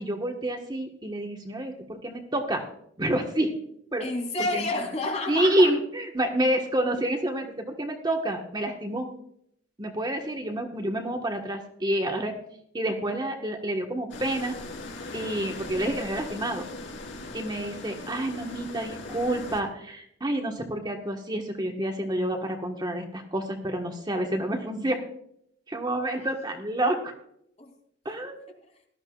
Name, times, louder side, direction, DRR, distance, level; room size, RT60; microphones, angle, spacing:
voice 1, 0.0-2.6 3.0-3.5 3.9-4.1 4.5-4.6 5.3-9.1 9.8-12.3 12.7-14.6 15.1-16.7 17.3-25.0 25.7-27.1 28.0-28.5, right 1 dB, 25° right, 2 dB, 1.4 m, -28 dB
voice 2, 4.0-5.7 26.1-26.3 27.6-27.7 28.6-28.7, left 2 dB, 35° left, 2 dB, 3.2 m, -30 dB
sound 1, 14.1-19.6, left 2 dB, 85° left, 3.6 m, -39 dB
18.0 x 13.0 x 2.4 m, 0.71 s
head